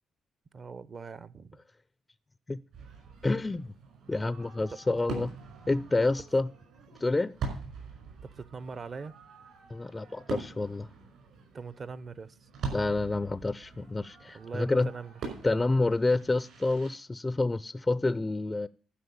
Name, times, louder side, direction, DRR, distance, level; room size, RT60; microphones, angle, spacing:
voice 1, 0.5-1.6 4.9-5.0 8.4-9.1 11.5-12.4 14.3-15.4, right 5 dB, 40° right, 0.6 m, -41 dB
Fireworks, 2.7-16.9, right 4 dB, 75° right, 5.3 m, -43 dB
voice 2, 3.2-3.7 4.1-5.3 5.7-6.5 7.0-7.3 9.7-10.9 12.7-14.9 15.4-18.7, left 2 dB, 20° left, 0.4 m, -28 dB
11.5 x 5.3 x 8.6 m
cardioid pair, 90°, 0 cm